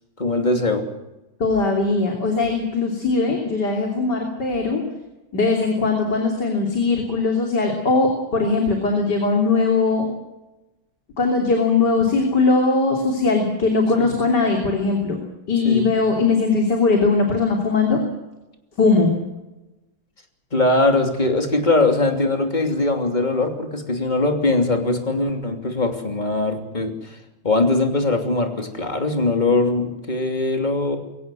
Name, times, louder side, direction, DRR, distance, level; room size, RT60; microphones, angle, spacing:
voice 1, 0.2-0.8 14.0-14.2 15.6-15.9 20.5-27.2 27.4-31.0, left 2 dB, 20° left, 4 dB, 3.0 m, -21 dB
voice 2, 1.4-4.8 5.3-10.1 11.2-15.2 15.5-18.0 18.8-19.1, left 3 dB, 50° left, 1 dB, 3.7 m, -20 dB
23.0 x 17.0 x 7.6 m, 1.0 s
omnidirectional pair, 2.3 m